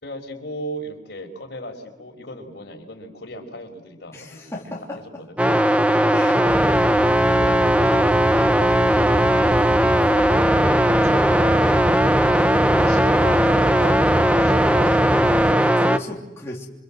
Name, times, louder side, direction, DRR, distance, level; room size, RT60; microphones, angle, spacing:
voice 1, 0.0-5.4 7.3-7.6 12.9-14.0 14.3-15.1, equal, 60° left, 3 dB, 5.7 m, -37 dB
voice 2, 4.1-5.0 6.1-6.4 15.3-16.7, left 1 dB, 15° left, -3 dB, 3.3 m, -35 dB
sound 1, 5.4-16.0, right 1 dB, 5° right, 0.9 m, -18 dB
sound 2, 6.5-15.5, equal, 30° right, 2.5 m, -29 dB
29.5 x 25.5 x 7.8 m, 1.0 s
head